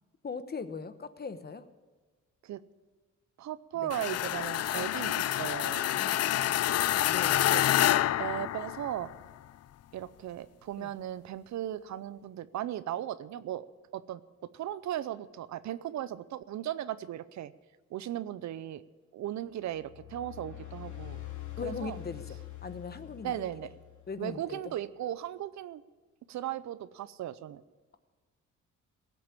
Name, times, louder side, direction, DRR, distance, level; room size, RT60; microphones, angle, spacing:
voice 1, 0.2-1.6 3.7-3.9 5.9-7.5 10.8-10.9 21.6-23.5 24.1-24.7, left 5 dB, 35° left, 11 dB, 1.0 m, -40 dB
voice 2, 3.4-6.0 7.5-7.6 8.2-9.1 9.9-13.7 13.9-14.2 14.5-17.5 17.9-18.8 19.1-21.2 21.6-22.0 23.2-23.7 24.2-25.8 26.3-27.6, right 12 dB, 65° right, 16 dB, 0.7 m, -37 dB
sound 1, 3.9-9.1, left 13 dB, 55° left, 0.5 m, -28 dB
sound 2, 19.7-24.3, left 15 dB, 70° left, 3.1 m, -44 dB
17.0 x 7.8 x 8.7 m, 1.3 s
cardioid pair, 90°, 30 cm